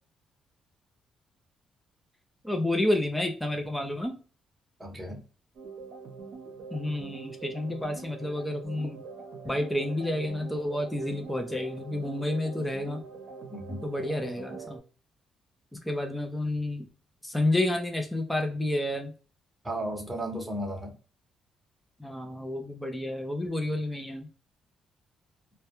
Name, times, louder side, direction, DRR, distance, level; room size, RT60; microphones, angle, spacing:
voice 1, 2.4-4.2 6.7-9.0 9.4-13.0 13.8-14.8 15.8-16.9 17.2-19.1 22.0-24.3, left 1 dB, 5° left, 0.4 m, -30 dB
voice 2, 4.8-5.2 13.5-13.8 19.6-20.9, right 1 dB, 10° right, 0.9 m, -34 dB
sound 1, 5.6-14.8, right 4 dB, 65° right, 0.6 m, -44 dB
2.2 x 2.1 x 2.9 m
cardioid pair, 90°, 0 cm